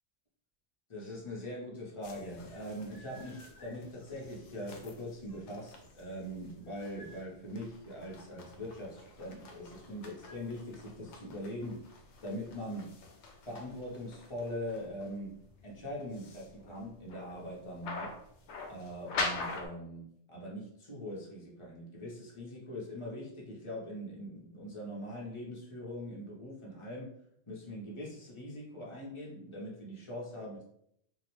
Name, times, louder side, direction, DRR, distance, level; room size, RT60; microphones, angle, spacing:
voice 1, 0.9-11.8 12.2-12.9 13.5-15.4 15.6-18.1 18.7-27.1 27.5-30.6, equal, 30° left, -4 dB, 0.6 m, -42 dB
sound 1, 2.0-19.7, left 3 dB, 70° left, 0.8 m, -45 dB
2.7 x 2.1 x 3.0 m, 0.70 s
omnidirectional pair, 1.3 m